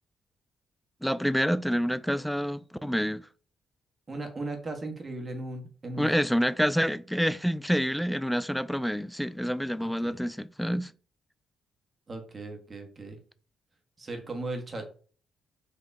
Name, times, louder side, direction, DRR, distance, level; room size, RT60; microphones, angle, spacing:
voice 1, 1.0-3.3 6.0-10.9, equal, ahead, 0.3 m, -27 dB
voice 2, 4.1-6.1 9.8-10.2 12.1-13.2 14.0-14.8, right 2 dB, 40° right, 1.3 m, -37 dB
4.5 x 2.8 x 3.5 m
hypercardioid pair, 50°, 0 cm